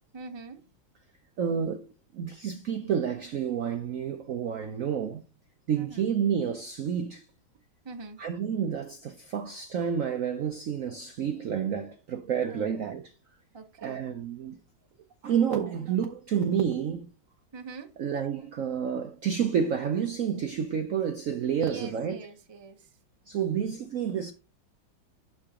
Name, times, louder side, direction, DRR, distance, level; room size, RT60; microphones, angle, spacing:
voice 1, 0.1-0.6 5.7-6.1 7.8-8.2 12.5-12.7 13.5-14.1 17.5-17.9 21.6-23.0, right 3 dB, 25° right, 0.5 m, -44 dB
voice 2, 1.4-1.9 2.1-5.2 5.7-7.3 8.2-13.1 13.8-14.6 15.2-17.1 18.0-22.2 23.3-24.3, right 8 dB, 85° right, 0.7 m, -29 dB
11.5 x 3.9 x 3.6 m
omnidirectional pair, 2.2 m